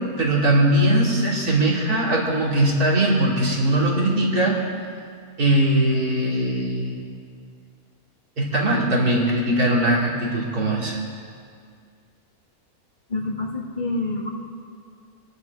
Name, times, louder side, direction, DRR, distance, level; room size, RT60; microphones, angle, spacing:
voice 1, 0.0-4.6 5.4-7.0 8.4-11.0, right 1 dB, 80° right, -4 dB, 3.1 m, -20 dB
voice 2, 13.1-14.3, left 2 dB, 35° left, -1 dB, 1.7 m, -27 dB
24.0 x 10.5 x 4.7 m, 2.2 s
omnidirectional pair, 1.6 m